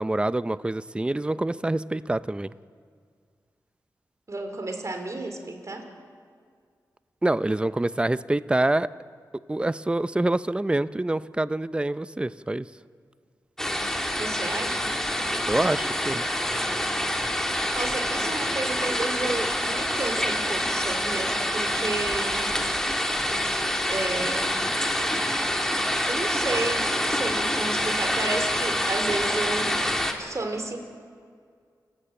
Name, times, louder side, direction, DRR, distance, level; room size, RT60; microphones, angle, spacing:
voice 1, 0.0-2.5 7.2-8.9 9.5-12.7 15.5-16.3, right 2 dB, 15° right, 15 dB, 0.6 m, -26 dB
voice 2, 4.3-5.9 14.1-14.9 17.7-22.5 23.9-24.6 26.1-29.8 30.2-30.8, right 2 dB, 45° right, 6 dB, 3.6 m, -32 dB
sound 1, 13.6-30.1, equal, 5° left, 2.7 m, -26 dB
29.0 x 13.5 x 8.9 m, 2.1 s
wide cardioid pair, 75°, 7 cm